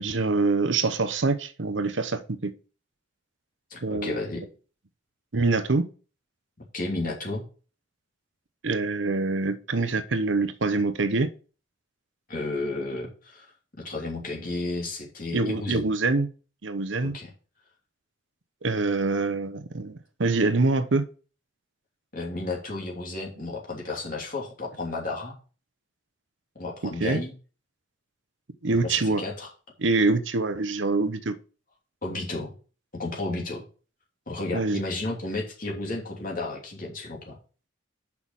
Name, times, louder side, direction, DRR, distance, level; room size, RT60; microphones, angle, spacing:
voice 1, 0.0-2.5 3.8-4.2 5.3-5.9 8.6-11.3 15.3-16.3 16.6-17.1 18.6-21.0 26.8-27.2 28.6-29.2 29.8-31.4 34.5-34.8, right 3 dB, 70° right, 0.9 m, -25 dB
voice 2, 3.7-4.5 6.7-7.4 12.3-13.5 13.8-15.9 17.0-17.3 22.1-25.4 26.5-27.3 28.7-29.5 32.0-32.5 32.9-33.6 34.3-37.4, left 2 dB, 45° left, 2.9 m, -32 dB
6.3 x 5.8 x 7.2 m
head